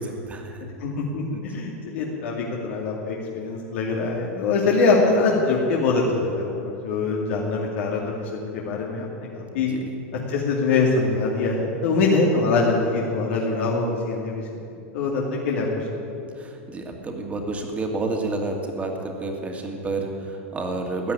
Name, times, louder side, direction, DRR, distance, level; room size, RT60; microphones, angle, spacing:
voice 1, 0.0-0.7 1.3-1.4 9.5-9.9 16.3-21.1, right 2 dB, 20° right, 2 dB, 2.3 m, -30 dB
voice 2, 0.8-9.1 9.3-9.7 10.3-14.4 14.9-15.8 16.1-16.2, left 3 dB, 70° left, -3 dB, 2.4 m, -23 dB
15.0 x 9.5 x 9.6 m, 2.7 s
supercardioid pair, 125°, 7 cm